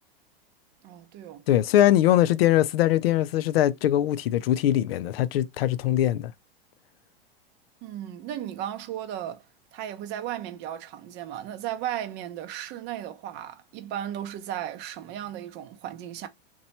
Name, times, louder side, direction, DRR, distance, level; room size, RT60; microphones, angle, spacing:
voice 1, 0.8-1.4 7.8-9.4 9.7-16.3, right 11 dB, 35° right, 0.6 m, -35 dB
voice 2, 1.5-6.3, left 12 dB, 70° left, 0.4 m, -22 dB
2.9 x 2.3 x 4.0 m
hypercardioid pair, 115°, 30 cm